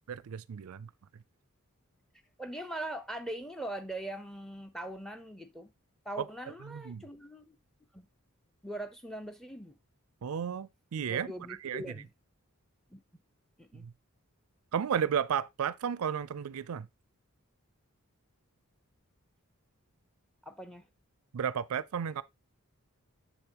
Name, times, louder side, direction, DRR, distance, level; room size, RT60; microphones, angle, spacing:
voice 1, 0.3-0.9 6.6-7.0 10.2-11.9 13.7-13.9 14.7-16.9 21.3-22.2, right 7 dB, 75° right, 0.4 m, -33 dB
voice 2, 2.4-5.7 6.0-7.6 7.9-8.1 8.6-9.8 11.1-12.1 12.9-13.0 13.6-13.8 20.4-20.8, right 1 dB, ahead, 0.7 m, -41 dB
7.3 x 6.9 x 2.8 m
head